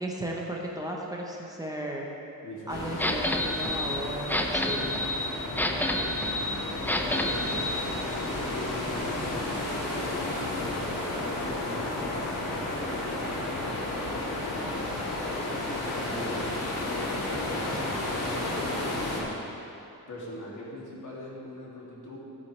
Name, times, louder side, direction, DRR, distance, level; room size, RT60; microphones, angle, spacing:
voice 1, 0.0-2.1 2.7-5.0, right 1 dB, 10° right, -2 dB, 0.8 m, -35 dB
voice 2, 2.4-3.0 5.2-7.7 8.3-12.0 12.9-16.7 17.3-19.5 20.1-22.2, left 1 dB, 60° left, -5 dB, 2.5 m, -42 dB
sound 1, 2.7-19.2, left 2 dB, 80° left, 2.3 m, -32 dB
sound 2, 3.0-7.8, left 1 dB, 5° left, 0.4 m, -29 dB
12.5 x 9.2 x 3.3 m, 2.7 s
wide cardioid pair, 145°, 34 cm